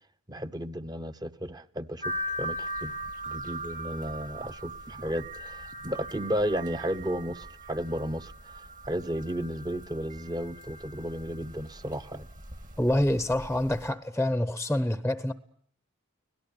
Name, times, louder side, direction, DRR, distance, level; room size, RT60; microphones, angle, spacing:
voice 1, 0.3-2.9 3.3-8.3 8.9-12.3, equal, 20° right, 1.0 m, -33 dB
sound 1, 2.0-13.9, equal, 40° right, 1.9 m, -40 dB
voice 2, 12.8-15.3, left 1 dB, 5° left, 0.9 m, -26 dB
25.5 x 18.0 x 8.7 m
head